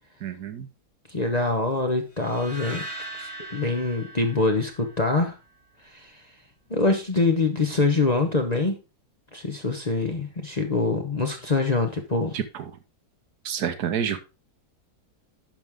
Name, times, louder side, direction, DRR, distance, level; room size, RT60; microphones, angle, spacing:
voice 1, 0.2-0.7 12.3-12.7 13.4-14.2, right 8 dB, 70° right, 10 dB, 1.4 m, -29 dB
voice 2, 1.1-2.8 3.2-5.3 5.9-6.1 6.7-8.8 9.3-12.4, left 3 dB, 30° left, 4 dB, 0.9 m, -24 dB
sound 1, 2.2-5.3, right 2 dB, 20° right, 2.9 m, -39 dB
10.5 x 6.2 x 3.6 m, 0.29 s
omnidirectional pair, 1.7 m